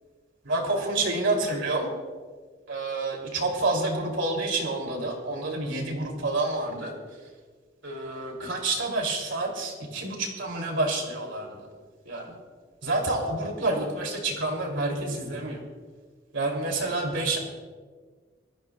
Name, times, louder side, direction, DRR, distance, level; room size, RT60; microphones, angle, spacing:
voice 1, 0.4-1.9 2.7-6.9 7.8-11.7 12.0-12.4 12.8-15.6 16.3-17.4, right 2 dB, 70° right, 1 dB, 2.9 m, -28 dB
21.5 x 14.5 x 2.3 m, 1.5 s
head